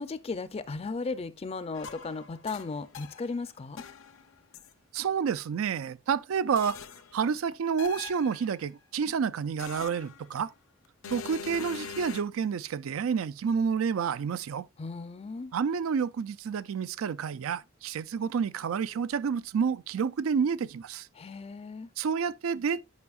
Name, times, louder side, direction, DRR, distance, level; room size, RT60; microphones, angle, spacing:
voice 1, 0.0-3.8 14.8-15.5 21.1-21.9, left 4 dB, 30° left, 0.4 m, -36 dB
sound 1, 1.7-3.4 3.8-4.7 6.6-7.2 7.8-8.6 9.6-10.5 11.0-12.2, left 6 dB, 75° left, 0.6 m, -43 dB
voice 2, 4.9-6.8 7.1-10.5 11.1-14.7 15.5-21.1 22.0-22.8, right 6 dB, 80° right, 0.4 m, -29 dB
9.5 x 5.5 x 2.3 m
head